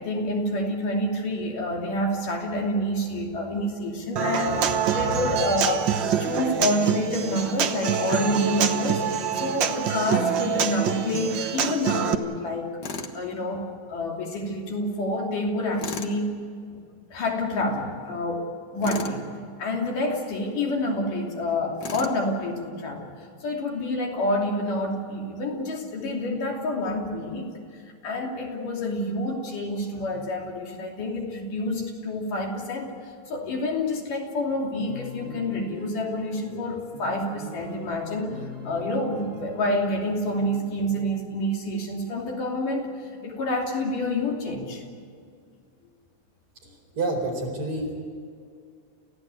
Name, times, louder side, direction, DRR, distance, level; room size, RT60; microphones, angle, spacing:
voice 1, 0.0-12.7 13.1-16.3 17.1-18.5 18.7-19.3 19.6-23.1 23.4-27.5 28.0-44.8, left 1 dB, 85° left, 0 dB, 4.6 m, -28 dB
Human voice / Acoustic guitar, 4.2-12.1, right 7 dB, 70° right, 1.1 m, -26 dB
Tools, 12.8-13.2 15.8-16.2 18.8-19.2 21.8-22.2, left 4 dB, 50° left, 1.4 m, -34 dB
sound 1, 34.5-40.9, left 2 dB, 20° right, 3.6 m, -42 dB
voice 2, 47.0-48.0, right 2 dB, 45° right, 0 dB, 5.3 m, -28 dB
29.5 x 16.0 x 8.4 m, 2.2 s
omnidirectional pair, 3.6 m